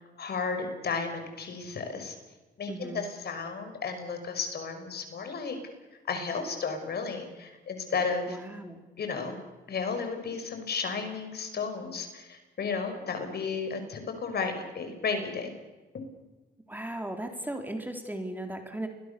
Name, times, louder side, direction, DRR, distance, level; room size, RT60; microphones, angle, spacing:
voice 1, 0.2-2.2 2.6-5.6 6.1-8.4 9.0-9.4 9.7-15.5, left 5 dB, 55° left, 7 dB, 5.4 m, -33 dB
voice 2, 2.7-3.0 8.3-8.8 16.7-18.9, right 1 dB, 10° right, 4 dB, 3.8 m, -36 dB
29.5 x 22.5 x 6.9 m, 1.2 s
cardioid pair, 90°, 20 cm